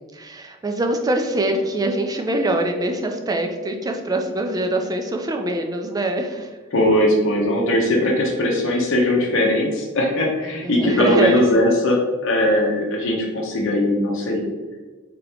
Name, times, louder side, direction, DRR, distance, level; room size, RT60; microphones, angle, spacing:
voice 1, 0.1-6.6 10.6-11.6, right 1 dB, 20° right, 4 dB, 0.3 m, -24 dB
voice 2, 6.7-14.4, left 1 dB, 65° left, -2 dB, 0.7 m, -19 dB
3.7 x 2.8 x 3.4 m, 1.3 s
head